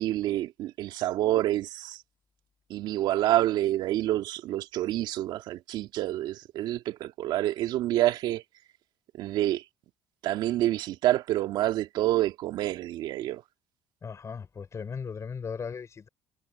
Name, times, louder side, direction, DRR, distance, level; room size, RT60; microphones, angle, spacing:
voice 1, 0.0-2.0 2.7-8.4 9.2-9.6 10.2-13.4, right 14 dB, 65° right, 1.9 m, -27 dB
voice 2, 14.0-16.1, left 6 dB, 40° left, 5.8 m, -37 dB
supercardioid pair, 70°, 8 cm